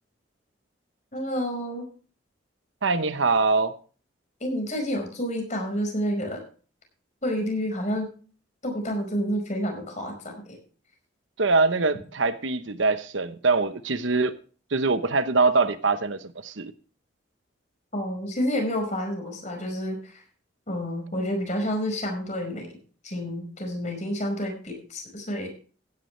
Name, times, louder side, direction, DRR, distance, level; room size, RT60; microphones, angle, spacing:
voice 1, 1.1-1.9 4.4-6.4 7.2-8.1 8.6-10.6 17.9-20.2 20.7-22.8 23.0-25.5, equal, 40° left, 4 dB, 5.1 m, -29 dB
voice 2, 2.8-3.7 11.4-14.3 14.7-16.7, right 3 dB, 75° right, 12 dB, 0.9 m, -23 dB
16.0 x 10.5 x 3.2 m, 0.39 s
head